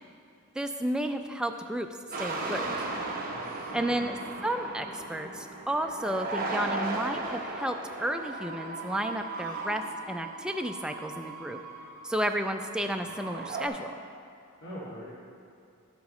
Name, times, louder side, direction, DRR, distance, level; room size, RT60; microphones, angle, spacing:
voice 1, 0.6-1.9 2.2-2.9 3.7-4.2 4.4-11.6 12.0-13.9, right 1 dB, 5° right, 5 dB, 0.3 m, -32 dB
sound 1, 2.1-13.7, right 2 dB, 40° right, 0.9 m, -37 dB
voice 2, 3.3-4.2 14.6-15.0, equal, 80° left, -11 dB, 2.2 m, -43 dB
11.5 x 8.5 x 3.1 m, 2.6 s
head